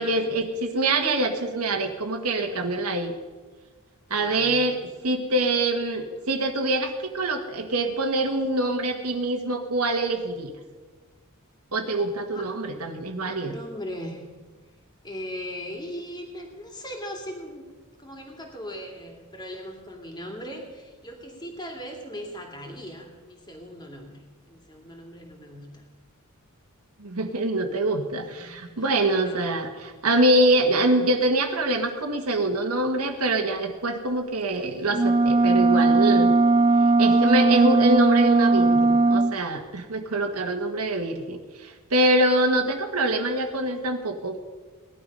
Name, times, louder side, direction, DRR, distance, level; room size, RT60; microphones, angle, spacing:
voice 1, 0.0-3.1 4.1-10.5 11.7-13.6 27.0-36.3 37.0-44.3, right 1 dB, 80° right, 3 dB, 1.5 m, -25 dB
voice 2, 4.2-4.8 12.3-12.5 13.2-14.2 15.0-17.7 18.0-25.9 28.1-29.6, equal, 20° left, 2 dB, 2.6 m, -39 dB
sound 1, 34.9-39.4, right 3 dB, 25° right, 0.4 m, -18 dB
18.5 x 11.5 x 5.5 m, 1.4 s
head